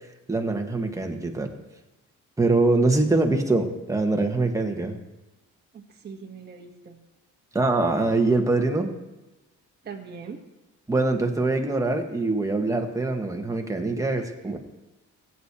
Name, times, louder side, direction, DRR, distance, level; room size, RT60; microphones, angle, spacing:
voice 1, 0.3-1.5 2.4-5.0 7.5-8.9 10.9-14.6, right 2 dB, 10° right, 3 dB, 1.4 m, -23 dB
voice 2, 5.7-7.0 9.8-10.4 14.0-14.3, right 5 dB, 35° right, 1 dB, 1.2 m, -41 dB
16.5 x 8.4 x 2.9 m, 1.0 s
cardioid pair, 90°, 30 cm